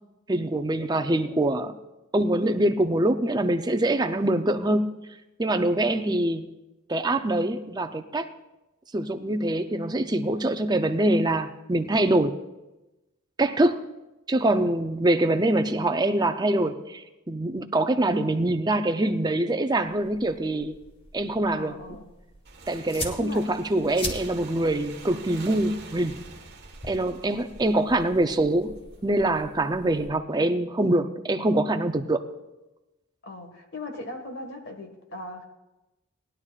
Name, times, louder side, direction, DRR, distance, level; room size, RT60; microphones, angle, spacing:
voice 1, 0.3-1.8 2.1-4.9 5.4-6.4 6.9-8.3 8.9-12.3 13.4-13.8 14.3-20.8 21.1-21.7 22.7-26.2 26.9-28.7 29.0-32.2, right 1 dB, 20° right, 8 dB, 0.5 m, -24 dB
sound 1, 19.8-30.1, left 1 dB, 25° left, 1.5 m, -42 dB
voice 2, 21.5-22.0 23.2-23.4 33.2-35.5, left 2 dB, 55° left, 5 dB, 1.7 m, -38 dB
Motorcycle / Engine, 22.4-28.8, right 3 dB, 50° right, 1.5 m, -46 dB
19.0 x 11.5 x 2.4 m, 1.0 s
head